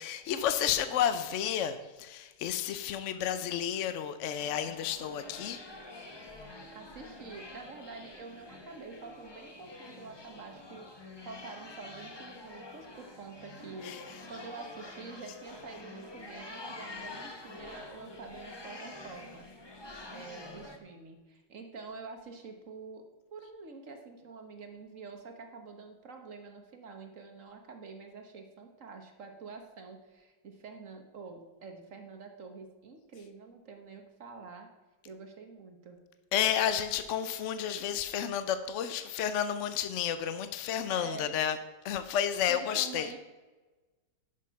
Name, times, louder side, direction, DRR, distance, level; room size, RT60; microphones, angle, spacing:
voice 1, 0.0-5.6 13.8-14.0 36.3-41.6 41.8-43.1, left 9 dB, 65° left, 11 dB, 0.7 m, -31 dB
sound 1, 4.4-20.8, left 2 dB, 25° left, 0.6 m, -47 dB
voice 2, 6.4-19.5 20.1-34.7 35.0-36.0 40.9-41.4 42.4-43.2, right 4 dB, 50° right, 4 dB, 1.4 m, -47 dB
10.5 x 6.5 x 5.7 m, 1.2 s
omnidirectional pair, 1.9 m